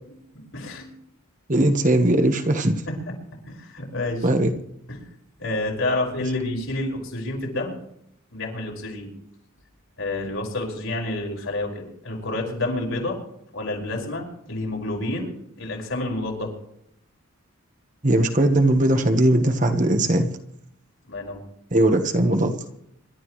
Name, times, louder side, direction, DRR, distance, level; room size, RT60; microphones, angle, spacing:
voice 1, 0.3-0.9 2.9-3.0 3.5-4.3 4.9-5.1 5.4-7.8 8.3-9.1 10.0-13.2 13.5-16.5 21.1-21.4, left 2 dB, 70° left, 5.2 m, -29 dB
voice 2, 1.5-2.7 4.2-4.5 18.0-20.3 21.7-22.6, right 1 dB, 35° right, 1.2 m, -19 dB
26.5 x 12.5 x 3.2 m
head